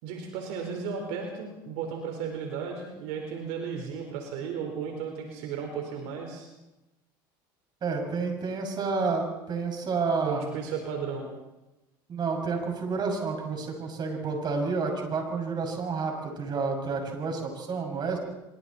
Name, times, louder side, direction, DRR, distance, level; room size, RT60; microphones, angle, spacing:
voice 1, 0.0-6.5 10.3-11.3, right 6 dB, 75° right, 2 dB, 4.5 m, -34 dB
voice 2, 7.8-10.4 12.1-18.2, right 4 dB, 40° right, 2 dB, 6.6 m, -30 dB
25.5 x 24.0 x 4.4 m, 0.99 s
supercardioid pair, 100°, 12 cm